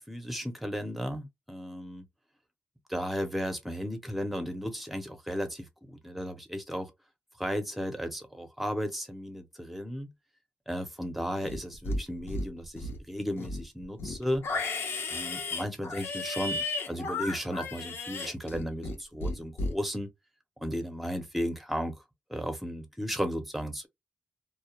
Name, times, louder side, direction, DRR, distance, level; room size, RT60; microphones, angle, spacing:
voice 1, 0.0-2.1 2.9-6.9 7.4-10.1 10.7-14.5 15.1-20.1 20.6-22.0 22.3-23.9, equal, ahead, 0.7 m, -34 dB
Livestock farm animals working animals, 11.4-12.0 12.3-13.0 13.4-19.0 19.2-19.7, left 2 dB, 75° left, 0.8 m, -34 dB
2.3 x 2.1 x 2.8 m
wide cardioid pair, 120°, 4 cm